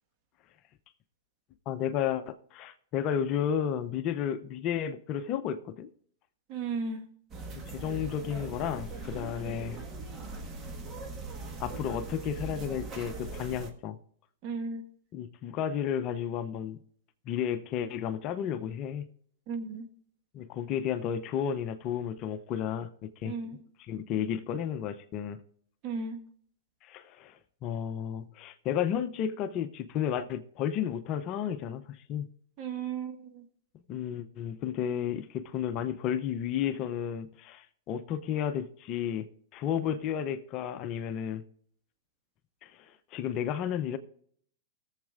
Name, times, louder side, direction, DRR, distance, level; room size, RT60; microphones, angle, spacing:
voice 1, 1.7-5.9 7.5-9.8 11.6-14.0 15.1-16.8 17.3-19.1 20.3-23.4 23.8-25.4 26.8-27.3 27.6-32.3 33.9-41.4 42.6-42.7 43.1-44.0, left 9 dB, 40° left, 0.7 m, -32 dB
voice 2, 6.5-7.0 9.5-9.6 14.4-14.8 19.5-19.9 23.2-23.6 25.8-26.2 32.6-33.4, right 5 dB, 45° right, 1.6 m, -35 dB
sound 1, 7.3-13.7, right 2 dB, 30° right, 1.4 m, -40 dB
20.0 x 7.3 x 2.5 m
hypercardioid pair, 115°, 0 cm